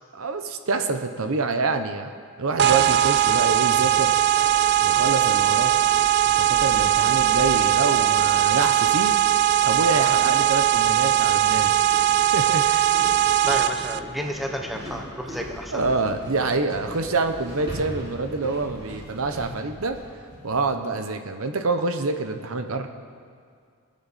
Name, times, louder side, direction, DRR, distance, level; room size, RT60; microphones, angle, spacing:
voice 1, 0.1-2.1 2.4-4.1 4.8-5.7 6.3-9.1 9.6-12.0 12.3-12.9 15.7-20.0 20.4-22.9, right 3 dB, 70° right, 7 dB, 0.9 m, -26 dB
sound 1, 2.6-14.0, right 11 dB, 50° right, 0.3 m, -20 dB
sound 2, 4.3-20.8, equal, 25° right, 3.3 m, -41 dB
voice 2, 13.5-15.8, equal, ahead, 2 dB, 0.9 m, -31 dB
23.5 x 8.6 x 4.2 m, 2.2 s
head